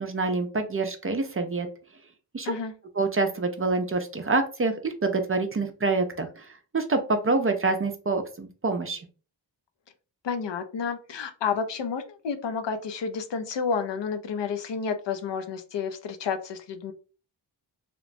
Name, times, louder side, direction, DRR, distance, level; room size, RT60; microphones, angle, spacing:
voice 1, 0.0-1.7 2.3-2.6 3.0-9.1, right 3 dB, 30° right, 6 dB, 0.4 m, -26 dB
voice 2, 10.2-16.9, left 6 dB, 70° left, 7 dB, 0.5 m, -30 dB
2.9 x 2.0 x 2.5 m, 0.36 s
wide cardioid pair, 60°, 45 cm